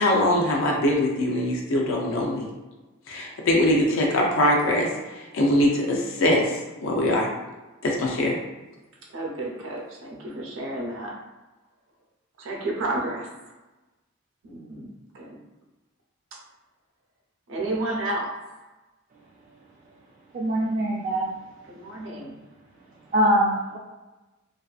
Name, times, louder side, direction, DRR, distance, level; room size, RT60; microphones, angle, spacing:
voice 1, 0.0-2.5 3.1-4.9 5.3-6.6 6.8-7.3 7.8-8.4, left 1 dB, 80° left, -1 dB, 0.5 m, -22 dB
voice 2, 9.1-11.2 12.4-13.3 14.4-15.4 16.3-16.4 17.5-18.3 21.7-22.3, right 2 dB, 75° right, -2 dB, 0.6 m, -31 dB
voice 3, 20.3-21.3 23.1-23.8, equal, 40° right, -4 dB, 0.3 m, -23 dB
2.6 x 2.3 x 2.3 m, 1.1 s
head